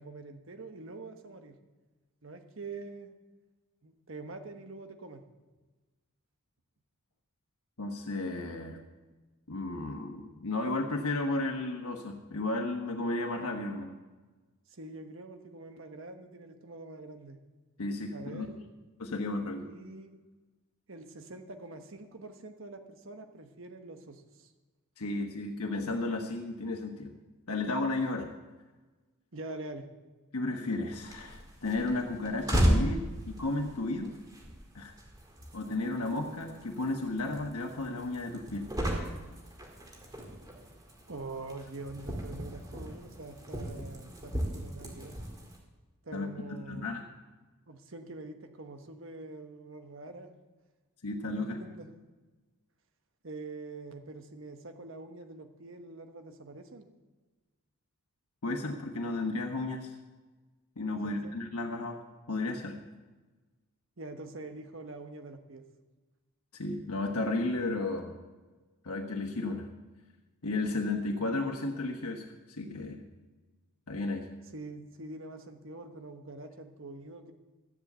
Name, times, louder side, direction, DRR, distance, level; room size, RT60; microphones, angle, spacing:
voice 1, 0.0-1.6 2.2-3.1 3.8-5.2 14.7-17.4 18.1-18.7 19.5-20.1 20.9-24.5 29.3-29.9 41.1-45.2 46.0-47.1 47.7-50.3 51.3-51.9 53.2-56.9 61.0-61.3 64.0-65.6 74.5-77.3, right 2 dB, 60° right, 6 dB, 1.2 m, -45 dB
voice 2, 7.8-8.8 9.5-13.9 17.8-18.5 19.0-19.6 25.0-27.1 27.5-28.3 30.3-34.2 34.7-34.9 35.5-38.7 46.1-47.0 51.0-51.6 58.4-60.0 60.8-62.0 62.3-62.8 66.5-68.1 68.8-69.7 70.4-73.0 73.9-74.2, left 2 dB, 85° left, 2 dB, 1.2 m, -33 dB
sound 1, 30.9-45.6, equal, 15° right, 2.0 m, -35 dB
13.0 x 7.4 x 8.0 m, 1.2 s
head